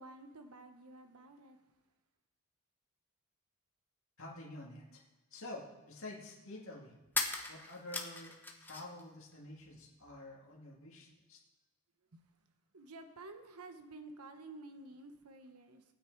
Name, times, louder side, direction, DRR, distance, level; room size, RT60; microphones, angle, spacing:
voice 1, 0.0-1.6 12.1-12.3 12.7-15.8, right 2 dB, 85° right, 1.1 m, -51 dB
voice 2, 4.2-5.0 5.3-6.9 7.5-11.4, left 2 dB, 65° left, 2.1 m, -49 dB
sound 1, 4.8-4.9 7.1-9.0 9.3-10.2, left 3 dB, 10° left, 1.1 m, -39 dB
17.0 x 9.2 x 4.6 m
head